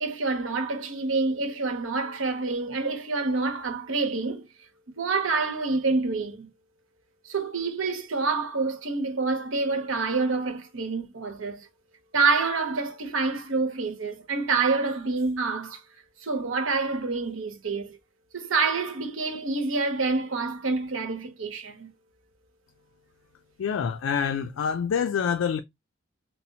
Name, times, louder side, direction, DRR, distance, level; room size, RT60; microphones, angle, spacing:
voice 1, 0.0-4.5 4.9-6.5 7.2-11.7 12.1-15.8 16.2-18.0 18.3-21.9, right 4 dB, 85° right, 0.9 m, -27 dB
voice 2, 23.6-25.6, left 7 dB, 80° left, 0.4 m, -26 dB
4.1 x 2.0 x 2.7 m
head